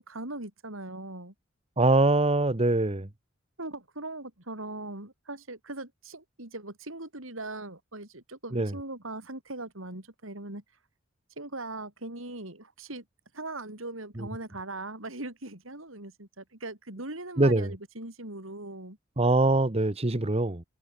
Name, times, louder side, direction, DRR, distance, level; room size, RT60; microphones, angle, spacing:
voice 1, 0.0-1.3 3.6-10.6 11.4-13.0 13.3-19.0, right 2 dB, 90° right, 6.6 m, -40 dB
voice 2, 1.8-3.1 8.5-8.7 14.2-14.3 17.4-17.7 19.2-20.6, right 2 dB, 30° right, 1.3 m, -23 dB
head